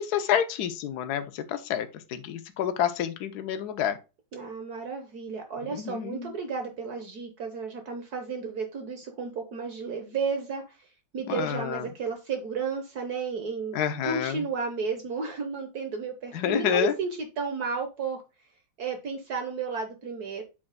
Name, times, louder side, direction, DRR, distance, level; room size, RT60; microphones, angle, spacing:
voice 1, 0.0-4.0 5.7-6.3 11.3-11.8 13.7-14.4 16.3-16.9, left 9 dB, 65° left, 1.3 m, -28 dB
voice 2, 4.3-10.6 11.1-18.2 18.8-20.4, right 5 dB, 60° right, 1.6 m, -33 dB
8.7 x 6.1 x 2.3 m
omnidirectional pair, 1.9 m